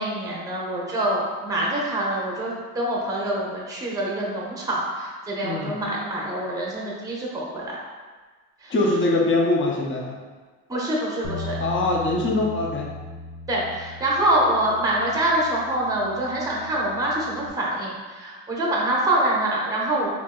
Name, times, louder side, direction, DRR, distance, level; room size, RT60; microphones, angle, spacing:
voice 1, 0.0-7.8 8.6-8.7 10.7-11.6 13.5-20.1, right 1 dB, 10° right, -4 dB, 0.7 m, -25 dB
voice 2, 5.4-5.7 8.7-10.2 11.6-12.9, left 2 dB, 35° left, -1 dB, 0.6 m, -23 dB
Bass guitar, 11.2-17.5, left 3 dB, 75° left, 0.7 m, -38 dB
2.9 x 2.5 x 3.6 m, 1.4 s
cardioid pair, 125°, 34 cm